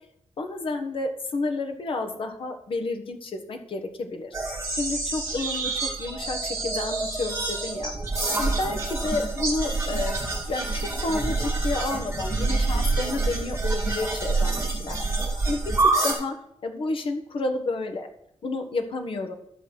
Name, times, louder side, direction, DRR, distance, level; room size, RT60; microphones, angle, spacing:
voice 1, 0.4-4.3 4.7-7.9 8.2-10.2 10.5-16.3 16.6-18.1 18.4-19.3, left 3 dB, 50° left, 5 dB, 1.3 m, -31 dB
sound 1, 4.3-16.1, right 3 dB, 25° right, 2.8 m, -27 dB
12.0 x 4.1 x 7.7 m, 0.75 s
wide cardioid pair, 180°, 12 cm